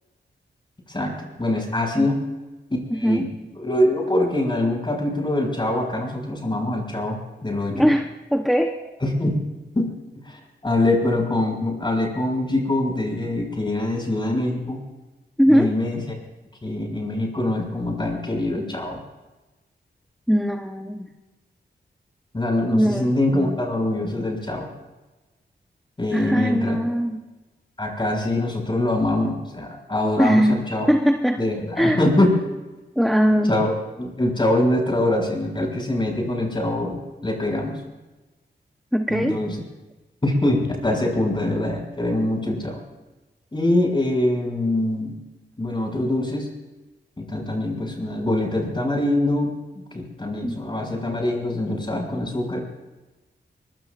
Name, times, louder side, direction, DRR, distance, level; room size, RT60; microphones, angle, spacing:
voice 1, 0.9-2.2 2.7-3.2 3.6-7.9 9.0-9.4 9.7-9.9 10.2-14.8 15.5-16.0 16.6-19.0 22.3-24.7 26.0-26.8 27.8-30.9 31.4-32.3 33.5-33.7 34.0-37.8 39.1-39.5 40.2-42.8 43.5-45.1 45.6-46.5 47.2-49.5 49.9-52.6, left 1 dB, 25° left, 1 dB, 6.8 m, -23 dB
voice 2, 2.9-3.3 7.7-8.8 15.4-15.7 20.3-21.2 22.7-23.6 26.1-27.2 30.2-30.6 30.9-31.4 31.8-32.0 33.0-33.6 38.9-39.4 50.4-50.6, equal, ahead, 4 dB, 1.1 m, -20 dB
23.5 x 23.5 x 2.6 m, 1.1 s
wide cardioid pair, 90°, 19 cm